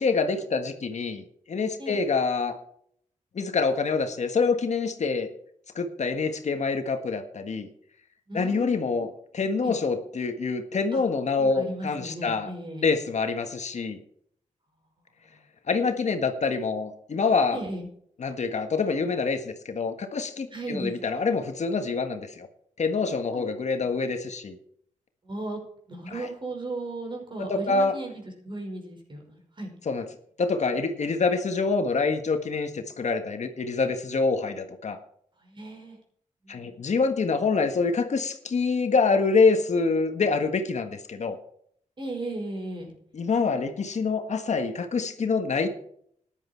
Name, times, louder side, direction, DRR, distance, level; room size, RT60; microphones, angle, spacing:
voice 1, 0.0-2.5 3.3-5.3 5.7-7.7 8.3-12.5 12.8-14.0 15.7-17.6 18.2-22.5 22.8-24.6 26.1-26.3 27.5-27.9 29.8-30.0 30.4-35.0 36.5-41.4 43.1-45.7, left 4 dB, 60° left, 6 dB, 1.6 m, -26 dB
voice 2, 8.3-9.1 9.6-9.8 10.9-11.0 11.4-13.0 17.5-17.9 20.5-21.2 23.3-23.4 25.2-25.6 25.9-29.7 35.4-36.0 36.4-36.9 42.0-42.9, right 2 dB, 40° right, 2 dB, 5.5 m, -36 dB
14.0 x 11.0 x 4.6 m, 0.65 s
wide cardioid pair, 100°, 13 cm